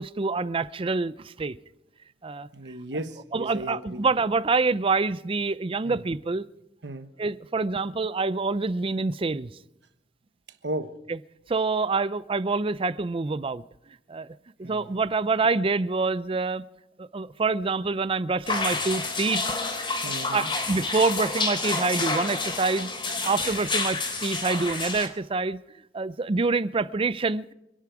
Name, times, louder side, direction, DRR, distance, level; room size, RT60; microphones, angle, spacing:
voice 1, 0.0-1.6 2.2-2.5 3.3-6.5 7.2-9.5 11.1-11.2 11.5-13.6 14.1-14.3 14.6-16.6 17.0-19.5 20.3-22.9 23.2-25.6 25.9-27.5, right 3 dB, 30° right, 0.5 m, -26 dB
voice 2, 2.5-4.0 5.8-6.0 6.8-7.1 10.6-10.9 14.6-14.9 20.0-20.5, right 1 dB, 70° right, 1.2 m, -35 dB
sound 1, 18.5-25.1, left 3 dB, 30° left, 3.1 m, -29 dB
28.0 x 10.5 x 4.8 m
head